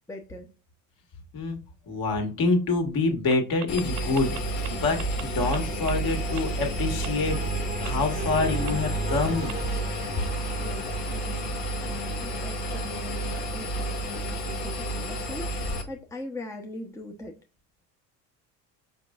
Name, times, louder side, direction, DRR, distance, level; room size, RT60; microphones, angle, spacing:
voice 1, 0.1-0.5 10.6-17.4, left 1 dB, 5° left, 0.8 m, -41 dB
voice 2, 1.9-10.0, left 3 dB, 50° left, 1.8 m, -27 dB
sound 1, 3.3-3.4 3.6-4.7 5.0-5.2 5.5-5.6 5.9-6.0 6.4-6.5 7.0-7.1 7.8-7.9 8.7-8.8 9.5-9.6, right 17 dB, 70° right, 0.6 m, -37 dB
Engine, 3.7-15.8, right 1 dB, 70° left, 1.4 m, -30 dB
sound 2, 6.5-11.7, equal, 15° right, 1.0 m, -37 dB
5.2 x 4.2 x 2.4 m
hypercardioid pair, 70°, 48 cm